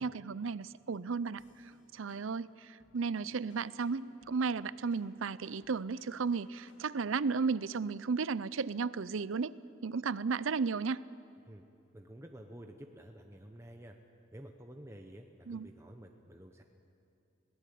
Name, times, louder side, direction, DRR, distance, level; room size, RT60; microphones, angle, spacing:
voice 1, 0.0-1.4 1.9-9.5 9.8-11.0 15.5-15.7, right 5 dB, 80° right, 18 dB, 0.5 m, -34 dB
sound 1, 1.4-7.1, left 2 dB, 65° left, 2.9 m, -64 dB
voice 2, 11.9-13.9 14.3-16.6, right 1 dB, 15° right, 3 dB, 0.9 m, -50 dB
22.0 x 18.0 x 8.5 m, 2.7 s
head